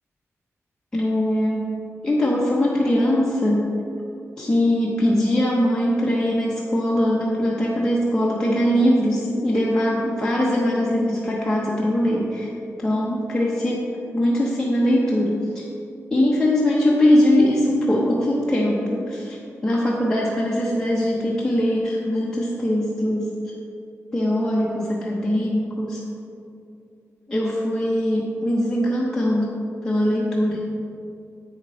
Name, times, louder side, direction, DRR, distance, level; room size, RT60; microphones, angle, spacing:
voice 1, 0.9-1.7 2.0-3.7 4.4-12.5 12.8-13.8 14.1-15.6 16.1-23.5 24.1-26.0 27.3-30.6, left 1 dB, 10° left, -5 dB, 0.8 m, -21 dB
8.3 x 6.6 x 4.3 m, 2.6 s
wide cardioid pair, 170°, 5 cm